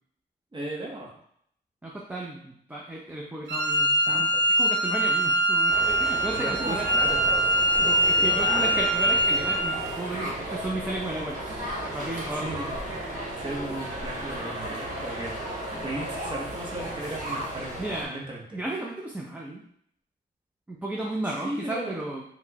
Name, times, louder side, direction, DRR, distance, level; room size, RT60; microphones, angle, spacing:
voice 1, 0.5-1.1 4.1-4.4 6.4-7.4 8.2-8.8 10.1-10.4 12.4-12.7 13.4-15.3 15.8-18.6 21.4-22.0, right 1 dB, 25° right, -2 dB, 0.8 m, -36 dB
voice 2, 1.8-4.3 4.6-6.9 7.8-12.6 17.8-18.2 18.5-19.6 20.7-22.2, right 1 dB, 10° right, -3 dB, 0.4 m, -34 dB
Wind instrument woodwind instrument, 3.5-9.8, right 1 dB, 85° right, 0.7 m, -23 dB
sound 1, 5.7-18.1, right 1 dB, 45° right, 1.1 m, -35 dB
4.2 x 2.1 x 2.7 m, 0.68 s
wide cardioid pair, 125°, 18 cm